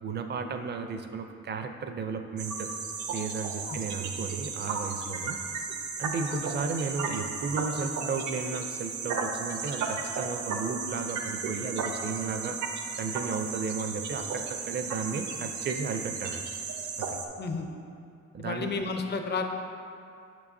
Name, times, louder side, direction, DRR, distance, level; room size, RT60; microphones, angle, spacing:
voice 1, 0.0-2.7 3.1-5.4 6.0-12.6 13.0-16.4 17.0-17.2 18.3-18.8, right 5 dB, 35° right, 6 dB, 0.4 m, -34 dB
sound 1, 2.4-17.3, right 5 dB, 75° right, 0.6 m, -35 dB
voice 2, 18.4-19.4, left 4 dB, 35° left, 5 dB, 0.5 m, -31 dB
6.1 x 6.0 x 2.6 m, 2.5 s
cardioid pair, 90°, 30 cm